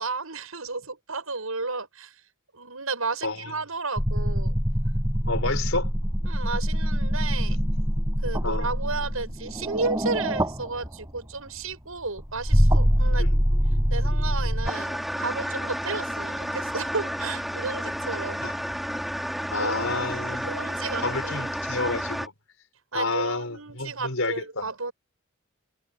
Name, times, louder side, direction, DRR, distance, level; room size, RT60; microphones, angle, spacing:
voice 1, 0.0-2.1 2.5-4.5 6.3-7.6 8.2-13.3 13.9-18.4 19.6-19.9 20.3-21.5 22.9-24.9, right 3 dB, 85° right, 7.5 m, -33 dB
voice 2, 3.2-3.5 5.3-5.9 7.5-7.6 8.4-8.7 13.2-13.4 18.4-18.7 19.5-20.5 21.0-22.3 22.9-24.7, left 3 dB, 75° left, 5.1 m, -30 dB
sound 1, 4.0-11.2 12.2-14.7, equal, 15° right, 6.0 m, -24 dB
sound 2, 14.6-22.3, equal, ahead, 2.2 m, -31 dB
head